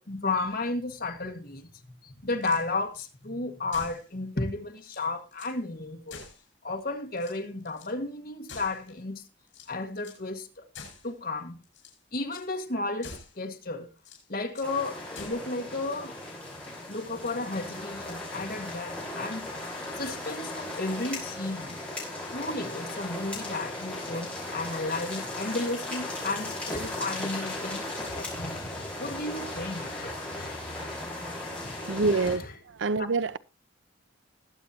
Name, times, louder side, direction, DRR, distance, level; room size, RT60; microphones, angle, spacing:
voice 1, 0.0-1.7 2.0-6.2 6.6-9.2 9.7-10.6 11.0-11.6 12.1-13.9 14.3-16.2 16.9-19.5 20.0-21.8 22.3-30.6 31.6-32.3 33.0-33.1, left 2 dB, 50° left, 1.8 m, -33 dB
sound 1, 2.3-3.1 3.7-4.1 4.5-4.6 4.8-5.6 6.1-6.8 7.1-7.9 8.5-9.0 9.5-10.3 10.7-11.1 11.6-12.0 12.3-12.5 13.0-13.4 14.0-14.8 15.1-15.5, left 4 dB, 70° left, 5.9 m, -47 dB
sound 2, 14.6-32.4, left 2 dB, 5° left, 5.4 m, -37 dB
voice 2, 31.8-33.4, right 3 dB, 70° right, 0.6 m, -27 dB
20.5 x 8.2 x 2.9 m
head